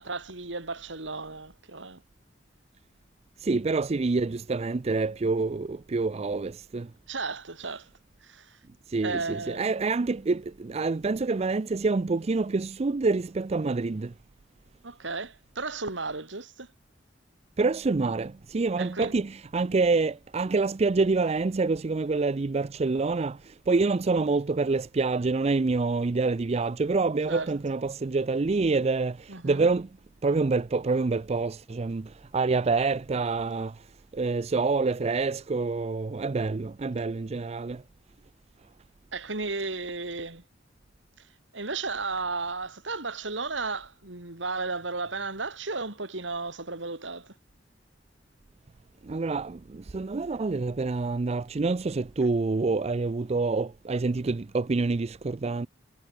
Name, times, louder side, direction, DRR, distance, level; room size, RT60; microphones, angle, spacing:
voice 1, 0.0-2.0 7.1-7.9 8.2-8.6 9.0-9.7 14.8-16.7 18.8-19.1 27.3-27.5 29.3-29.7 39.1-40.4 41.2-41.3 41.5-47.3, right 3 dB, 80° right, 3.7 m, -34 dB
voice 2, 3.4-6.9 8.9-14.1 17.6-23.4 23.7-29.9 30.2-33.7 34.1-37.8 49.1-55.7, right 3 dB, 35° right, 0.4 m, -27 dB
head